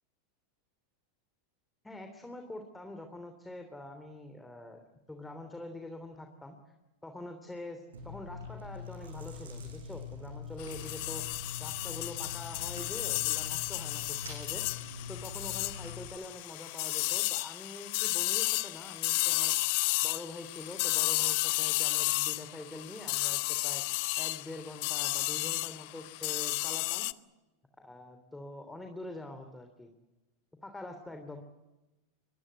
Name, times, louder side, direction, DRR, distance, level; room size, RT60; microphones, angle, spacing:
voice 1, 1.8-4.8 5.1-6.6 7.0-11.2 11.6-14.6 15.1-19.6 20.0-27.1 27.8-29.9 30.6-31.4, left 1 dB, 10° left, 5 dB, 3.2 m, -45 dB
Chewing mastication, 7.9-16.1, left 4 dB, 85° right, 7.6 m, -44 dB
sound 1, 10.6-27.1, left 23 dB, 60° left, 0.8 m, -32 dB
24.0 x 21.5 x 8.2 m, 1.1 s
hypercardioid pair, 95°, 0 cm